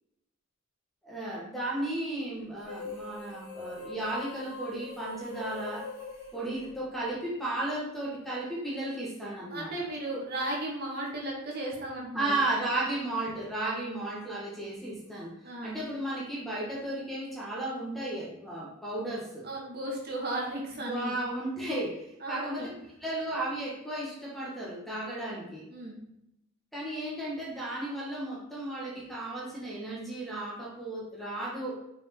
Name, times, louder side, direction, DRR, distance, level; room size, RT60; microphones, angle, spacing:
voice 1, 1.0-5.9 6.3-9.7 12.1-15.3 15.6-19.5 20.9-25.6 26.7-31.8, right 1 dB, ahead, -5 dB, 1.9 m, -34 dB
sound 1, 2.6-7.3, left 3 dB, 45° left, 2.8 m, -42 dB
voice 2, 9.5-12.4 15.4-15.8 19.4-21.2 22.2-22.7 25.7-26.0, right 1 dB, 50° right, -3 dB, 2.0 m, -35 dB
6.3 x 5.0 x 4.6 m, 0.83 s
head